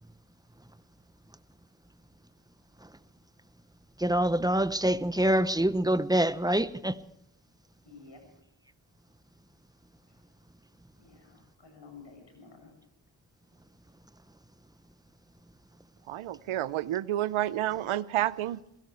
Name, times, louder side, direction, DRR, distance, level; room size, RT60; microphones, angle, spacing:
voice 1, 4.0-7.0, right 1 dB, 10° right, 0.8 m, -25 dB
voice 2, 7.8-8.2 11.0-12.8, left 4 dB, 60° left, 7.6 m, -52 dB
voice 3, 16.1-18.6, right 13 dB, 90° right, 0.7 m, -30 dB
22.5 x 17.5 x 3.4 m
cardioid pair, 55°, 47 cm